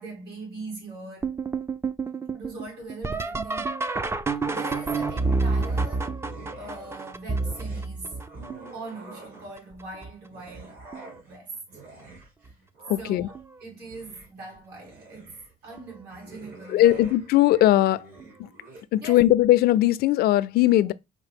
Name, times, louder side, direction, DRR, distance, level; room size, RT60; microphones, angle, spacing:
voice 1, 0.0-1.4 2.3-3.7 4.5-6.2 6.6-8.2 8.7-10.8 11.2-11.8 12.4-12.5 13.0-17.1 19.0-19.2, right 3 dB, 75° right, 3.2 m, -41 dB
sound 1, 1.2-8.9 9.6-10.1 10.5-11.2 12.5-12.6 13.3-13.6 15.8-15.9 18.2-18.3, right 4 dB, 15° right, 0.3 m, -29 dB
sound 2, 4.4-7.0 7.3-9.7 10.2-18.8, right 3 dB, 55° right, 1.8 m, -47 dB
voice 2, 12.9-13.3 16.7-18.1 18.4-18.5 18.9-20.9, left 14 dB, 65° left, 0.4 m, -19 dB
4.7 x 2.7 x 3.4 m
cardioid pair, 110°, 17 cm